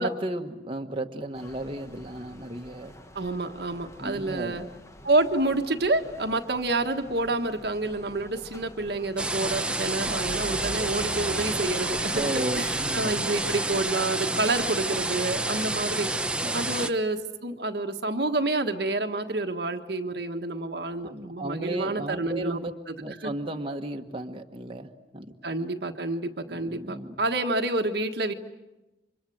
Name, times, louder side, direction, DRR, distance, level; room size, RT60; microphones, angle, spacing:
voice 1, 0.0-2.9 4.0-4.6 12.1-13.3 16.4-16.6 21.0-22.7 23.0-25.3 26.5-27.2, right 1 dB, 30° right, 2 dB, 1.4 m, -34 dB
sound 1, 1.4-13.9, left 1 dB, 15° left, 1.2 m, -44 dB
voice 2, 3.1-4.6 5.0-16.1 16.5-22.6 22.9-23.0 23.2-23.3 25.4-28.3, right 2 dB, 60° right, 5 dB, 1.4 m, -28 dB
sound 2, 9.2-16.9, right 2 dB, 5° right, 0.9 m, -29 dB
29.5 x 25.5 x 7.8 m, 1.0 s
head